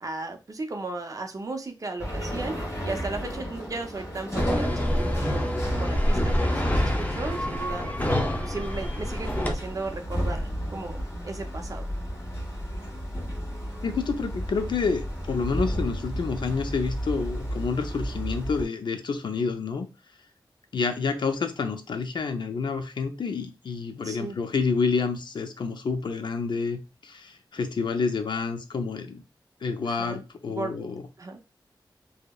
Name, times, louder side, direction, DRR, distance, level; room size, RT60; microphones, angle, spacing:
voice 1, 0.0-2.6 2.8-7.9 8.4-11.9 24.0-24.4 29.9-30.7 31.2-31.4, right 3 dB, 45° right, 5 dB, 0.5 m, -35 dB
sound 1, 2.0-18.7, equal, 40° left, 1.3 m, -33 dB
sound 2, 4.4-9.5, equal, 20° left, 0.5 m, -26 dB
voice 2, 13.8-19.9 20.7-29.2 29.6-31.0, left 4 dB, 70° left, 7 dB, 0.4 m, -28 dB
2.7 x 2.0 x 2.2 m, 0.29 s
wide cardioid pair, 65°, 8 cm